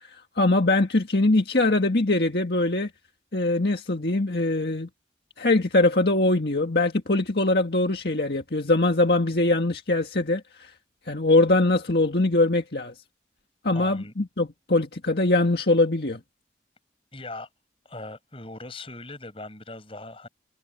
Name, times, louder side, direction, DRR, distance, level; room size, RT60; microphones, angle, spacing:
voice 1, 0.0-2.9 3.3-4.9 5.4-10.7 11.1-12.9 13.6-16.2, left 2 dB, 65° left, 1.8 m, -22 dB
voice 2, 13.7-14.1 17.1-17.5 17.9-20.3, left 2 dB, 30° left, 7.1 m, -39 dB
head